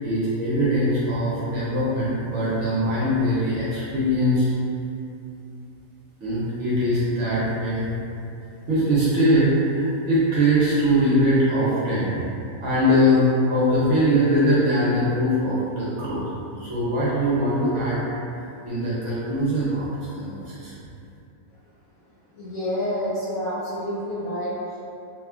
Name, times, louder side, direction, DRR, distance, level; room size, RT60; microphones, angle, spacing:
voice 1, 0.0-4.5 6.2-7.9 8.7-12.1 12.6-16.2 16.6-18.0 18.6-20.7, equal, 65° right, -9 dB, 0.8 m, -22 dB
voice 2, 22.3-24.8, equal, 70° left, -13 dB, 1.2 m, -28 dB
2.9 x 2.3 x 2.2 m, 2.7 s
omnidirectional pair, 1.6 m